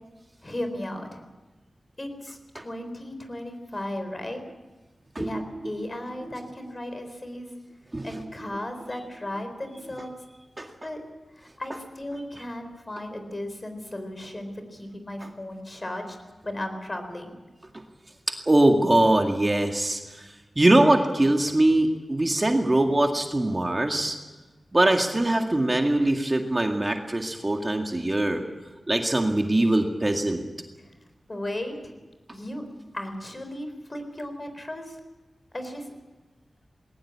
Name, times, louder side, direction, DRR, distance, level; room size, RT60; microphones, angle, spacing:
voice 1, 0.4-1.2 2.0-4.4 5.2-7.6 8.0-10.1 10.8-11.0 11.4-16.2 16.4-17.4 31.3-31.9 32.3-32.6 32.9-35.0 35.5-35.9, left 1 dB, 30° left, 7 dB, 4.3 m, -35 dB
voice 2, 18.5-20.0 20.6-24.2 24.7-28.4 28.9-30.4, right 1 dB, 25° right, 3 dB, 2.1 m, -22 dB
20.5 x 18.5 x 8.6 m, 1.2 s
wide cardioid pair, 75°, 0 cm